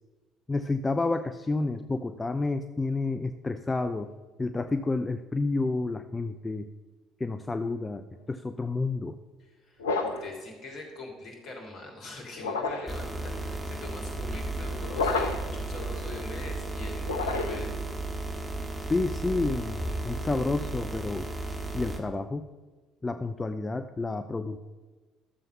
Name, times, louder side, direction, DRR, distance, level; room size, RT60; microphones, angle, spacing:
voice 1, 0.5-4.1 4.4-6.7 7.2-9.2 18.9-21.3 21.7-22.4 23.0-24.6, left 3 dB, 20° left, 9 dB, 0.6 m, -30 dB
voice 2, 9.4-17.8, left 2 dB, 50° left, 1 dB, 3.2 m, -43 dB
sound 1, 9.8-10.3 12.4-13.0 14.9-15.6 17.0-17.8, left 4 dB, 80° left, 0.8 m, -30 dB
sound 2, 12.9-22.0, right 2 dB, 20° right, 1.9 m, -34 dB
12.5 x 7.4 x 5.6 m, 1.3 s
figure-of-eight pair, 55°, 0 cm